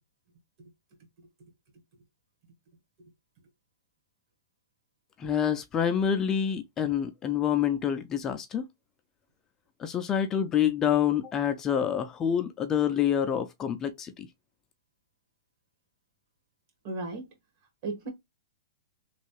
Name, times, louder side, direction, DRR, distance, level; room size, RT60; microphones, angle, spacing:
voice 1, 5.2-8.7 9.8-14.3, left 9 dB, 20° left, 0.4 m, -27 dB
voice 2, 16.8-17.3 17.8-18.1, right 3 dB, 50° right, 1.4 m, -36 dB
3.1 x 2.3 x 3.1 m
hypercardioid pair, 125°, 2 cm